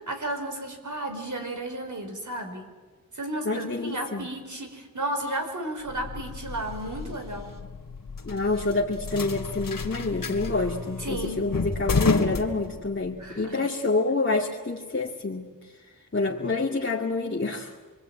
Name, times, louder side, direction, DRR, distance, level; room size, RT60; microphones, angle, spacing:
voice 1, 0.1-2.6 3.1-7.6 11.0-11.4 13.2-13.6, right 1 dB, 60° right, 4 dB, 5.2 m, -33 dB
voice 2, 3.4-4.3 8.2-15.7 16.1-17.7, left 3 dB, 35° left, -2 dB, 2.3 m, -27 dB
sound 1, 5.9-13.2, left 4 dB, 70° left, 2.5 m, -31 dB
26.5 x 23.5 x 9.1 m, 1.4 s
wide cardioid pair, 90°, 35 cm